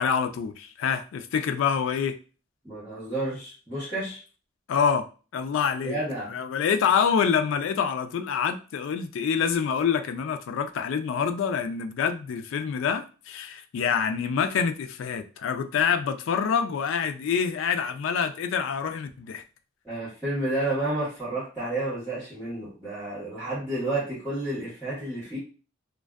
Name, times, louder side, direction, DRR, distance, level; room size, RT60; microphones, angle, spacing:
voice 1, 0.0-2.1 4.7-5.1 5.3-6.0 6.3-19.4, left 7 dB, 75° left, 0.3 m, -26 dB
voice 2, 2.6-4.2 5.8-6.3 19.8-25.4, right 2 dB, 10° right, 1.1 m, -30 dB
2.5 x 2.2 x 2.3 m
head